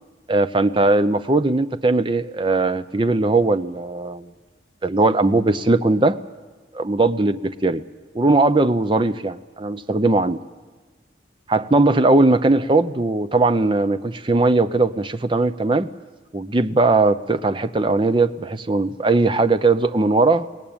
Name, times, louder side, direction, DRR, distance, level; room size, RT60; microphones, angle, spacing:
voice 1, 0.3-4.3 4.8-6.2 6.7-7.8 8.1-10.4 11.5-15.9 16.3-20.5, right 2 dB, 25° right, 12 dB, 0.7 m, -19 dB
21.5 x 19.0 x 8.8 m, 1.4 s
head